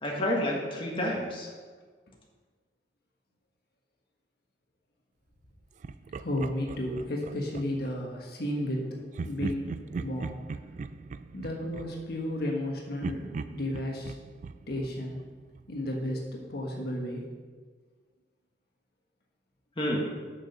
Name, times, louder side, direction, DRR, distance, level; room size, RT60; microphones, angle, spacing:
voice 1, 0.0-1.5 19.8-20.3, left 1 dB, 30° left, -2 dB, 1.5 m, -30 dB
Laughter, 5.8-8.0 9.1-12.6 13.0-15.8, right 4 dB, 45° right, 0.3 m, -39 dB
voice 2, 6.1-10.4 11.3-14.1 14.7-15.3 15.7-16.2 16.5-17.2, left 1 dB, 65° left, -1 dB, 1.4 m, -33 dB
6.6 x 6.2 x 6.7 m, 1.5 s
head